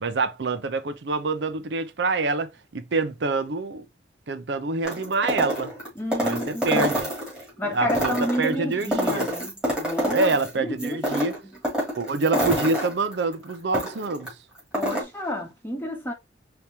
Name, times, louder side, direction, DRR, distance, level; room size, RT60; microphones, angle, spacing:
voice 1, 0.0-3.9 4.3-5.7 6.2-7.1 7.6-9.3 10.1-11.4 11.9-14.3, right 3 dB, 70° right, 0.6 m, -26 dB
sound 1, 4.8-7.4 7.8-10.5 10.8-14.3 14.6-15.0, equal, 5° right, 2.5 m, -27 dB
voice 2, 6.0-6.9 7.6-10.3 10.6-11.5 14.7-16.1, equal, 10° left, 1.1 m, -30 dB
5.0 x 2.9 x 2.8 m
head